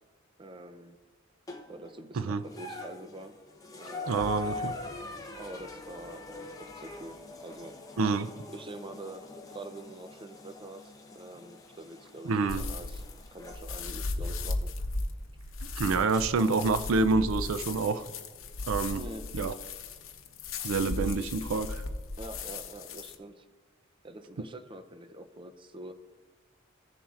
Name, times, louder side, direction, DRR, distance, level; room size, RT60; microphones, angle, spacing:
voice 1, 0.4-1.0 1.7-3.4 3.8-4.6 5.3-8.3 8.5-13.0 13.3-14.7 18.9-19.3 22.2-23.5 24.0-25.9, right 1 dB, 25° right, 7 dB, 0.5 m, -45 dB
sound 1, 1.5-1.9 2.4-13.6 14.8-14.9 16.1-16.2, left 4 dB, 15° left, 0.8 m, -44 dB
voice 2, 4.1-4.7 8.0-8.3 12.3-12.6 15.8-18.0 18.7-19.0 19.3-19.5 20.6-21.8, right 4 dB, 75° right, 12 dB, 0.4 m, -27 dB
sound 2, 4.2-9.1 9.4-9.5, equal, 45° right, 1.5 m, -53 dB
sound 3, 12.5-23.1, left 3 dB, 70° left, 0.8 m, -36 dB
16.0 x 7.0 x 2.5 m, 1.4 s
head